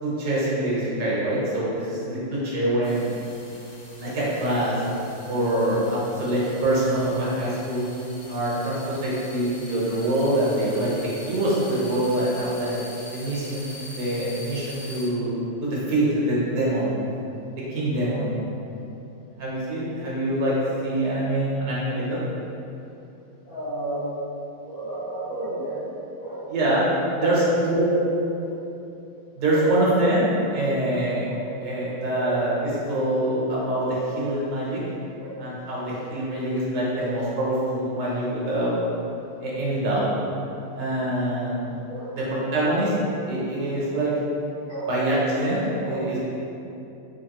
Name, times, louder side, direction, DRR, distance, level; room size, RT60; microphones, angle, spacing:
voice 1, 0.0-3.0 4.0-4.8 5.3-7.9 8.3-12.7 13.1-13.7 13.9-15.3 15.6-17.0 17.7-18.3 19.4-20.5 20.8-22.2 26.5-26.8 27.2-27.8 29.4-30.2 30.5-31.3 31.6-32.5 32.9-33.9 34.2-34.8 35.4-38.8 39.4-40.0 40.7-41.7 42.1-42.9 43.3-44.1 44.9-45.6 45.9-46.2, right 1 dB, 65° right, -6 dB, 1.5 m, -25 dB
sound 1, 2.8-15.1, left 2 dB, 55° left, 1.0 m, -43 dB
voice 2, 23.4-24.1 24.6-25.9 26.2-26.4 27.7-27.9 28.3-28.6 29.5-29.7 30.0-30.1 31.3-31.7 32.1-32.4 35.2-35.3 41.0-41.3 41.9-42.5 43.9-44.1 44.7-44.9 45.8-46.1, right 2 dB, 40° left, -15 dB, 1.9 m, -33 dB
3.6 x 3.2 x 2.9 m, 2.8 s
omnidirectional pair, 2.1 m